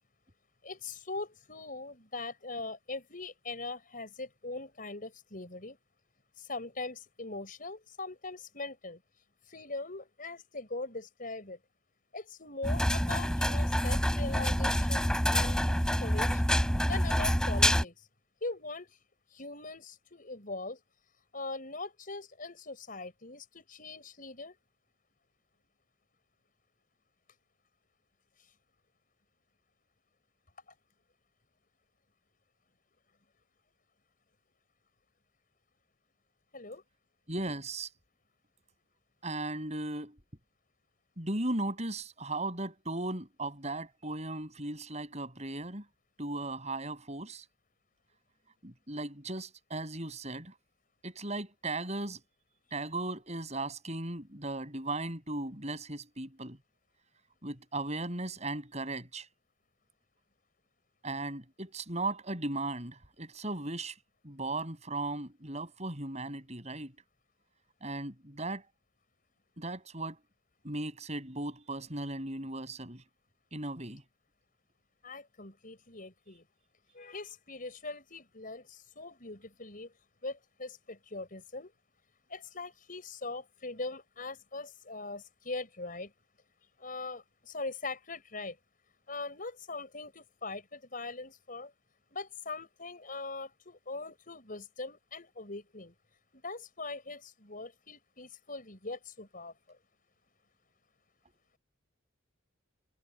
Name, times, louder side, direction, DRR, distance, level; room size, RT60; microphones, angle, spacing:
voice 1, 0.6-5.8 6.4-9.0 9.5-11.6 12.1-15.6 16.0-16.4 16.7-18.1 18.4-19.0 19.3-20.8 21.3-24.6 36.5-36.8 75.0-76.5 76.9-79.9 80.2-81.7 82.3-86.1 86.8-88.6 89.1-91.7 92.1-95.9 96.3-99.8, left 3 dB, 45° left, 6.7 m, -41 dB
sound 1, 12.6-17.8, equal, 5° left, 3.2 m, -27 dB
voice 2, 37.3-37.9 39.2-40.2 41.2-45.8 46.2-47.4 48.6-50.5 51.0-52.2 52.7-56.6 57.4-59.3 61.0-63.9 64.2-66.9 67.8-68.6 69.6-70.2 70.6-73.0 73.5-74.0, right 2 dB, 35° right, 7.4 m, -37 dB
head